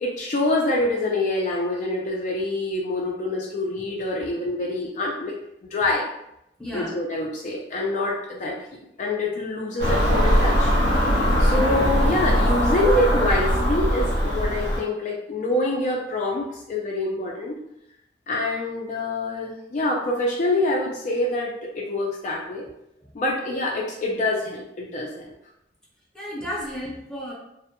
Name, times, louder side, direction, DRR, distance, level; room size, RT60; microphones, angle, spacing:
voice 1, 0.0-5.4 5.7-6.1 6.7-8.6 9.0-10.7 11.4-17.6 18.3-22.7 23.1-25.3, left 2 dB, 45° left, -2 dB, 0.3 m, -26 dB
voice 2, 6.6-6.9 11.5-11.7 26.1-27.3, equal, 5° left, -5 dB, 0.7 m, -33 dB
Car passing by / Engine, 9.8-14.8, equal, 70° right, 0.6 m, -21 dB
2.1 x 2.0 x 2.8 m, 0.81 s
head